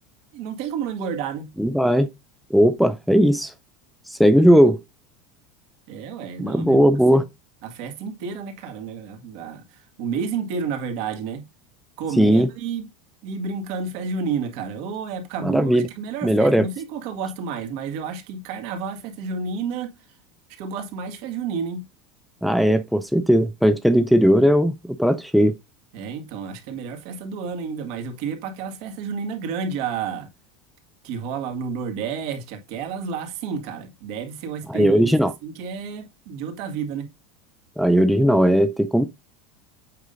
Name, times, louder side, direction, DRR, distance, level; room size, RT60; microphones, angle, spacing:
voice 1, 0.3-1.5 5.9-6.8 7.1-7.2 7.6-11.5 12.0-12.9 13.2-19.9 20.5-21.8 25.9-30.3 31.0-37.1, right 6 dB, 60° right, 1.9 m, -30 dB
voice 2, 1.6-2.1 2.5-3.5 4.1-4.8 6.4-7.2 12.2-12.5 15.4-15.9 16.2-16.7 22.4-24.7 25.0-25.5 34.7-35.3 37.8-39.1, equal, ahead, 0.4 m, -17 dB
8.0 x 5.3 x 2.7 m
supercardioid pair, 150°, 3 cm